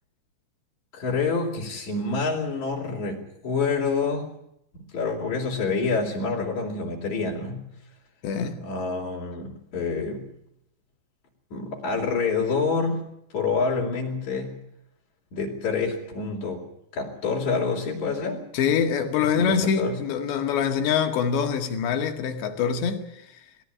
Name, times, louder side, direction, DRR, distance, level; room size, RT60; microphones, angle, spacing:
voice 1, 0.9-4.3 4.9-7.7 8.6-10.3 11.5-13.0 13.3-14.6 15.3-16.7 16.9-18.5 19.4-20.0, left 4 dB, 40° left, 4.7 m, -27 dB
voice 2, 8.2-8.6 18.5-23.2, left 7 dB, 70° left, 4.1 m, -24 dB
22.0 x 15.5 x 9.6 m
omnidirectional pair, 5.3 m